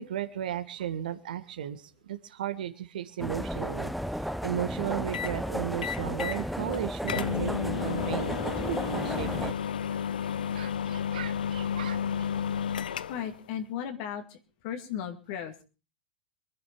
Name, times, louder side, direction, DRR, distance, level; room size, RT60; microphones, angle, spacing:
voice 1, 0.0-3.9 4.2-8.4 8.7-9.6 9.9-10.0 10.5-12.3, right 11 dB, 65° right, 10 dB, 1.5 m, -35 dB
sound 1, 3.2-9.5, equal, ahead, 0.7 m, -33 dB
sound 2, 5.1-5.4 5.8-6.4 6.7-6.8 7.1-13.4, left 8 dB, 70° left, 0.7 m, -32 dB
voice 2, 13.1-14.4 14.6-15.6, left 9 dB, 50° left, 4 dB, 2.3 m, -36 dB
24.0 x 10.5 x 4.6 m, 0.34 s
figure-of-eight pair, 100°, 5 cm